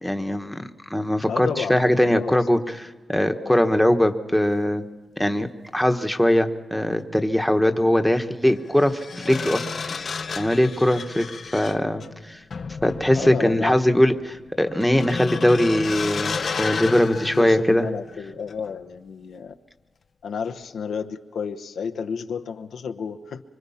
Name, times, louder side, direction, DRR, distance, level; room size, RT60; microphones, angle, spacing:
voice 1, 0.0-4.8 5.2-5.5 5.7-12.4 12.8-17.8, left 1 dB, 5° left, 6 dB, 1.3 m, -21 dB
voice 2, 1.3-2.4 3.2-3.6 13.1-13.9 17.3-19.5 20.2-23.4, left 6 dB, 85° left, 7 dB, 0.9 m, -32 dB
sound 1, 7.1-7.2 8.5-18.1 18.5-18.7, left 5 dB, 60° left, 0.7 m, -32 dB
25.0 x 24.0 x 5.8 m, 1.2 s
cardioid pair, 85°, 0 cm